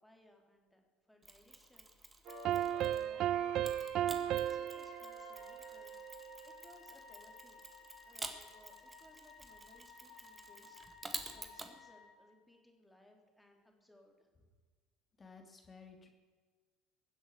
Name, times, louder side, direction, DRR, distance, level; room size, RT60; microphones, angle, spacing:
voice 1, 0.0-4.0 4.2-6.0 6.4-7.6 8.0-14.3, left 1 dB, 5° left, 2 dB, 3.3 m, -64 dB
Mechanisms, 1.2-3.1 3.6-11.7, right 3 dB, 20° right, 1.8 m, -50 dB
Wind instrument woodwind instrument, 2.3-12.1, left 5 dB, 65° left, 3.2 m, -55 dB
sound 1, 2.3-6.5, right 11 dB, 55° right, 0.3 m, -36 dB
voice 2, 15.2-16.1, left 5 dB, 25° left, 4 dB, 2.9 m, -55 dB
22.0 x 7.7 x 6.6 m, 1.5 s
hypercardioid pair, 70°, 0 cm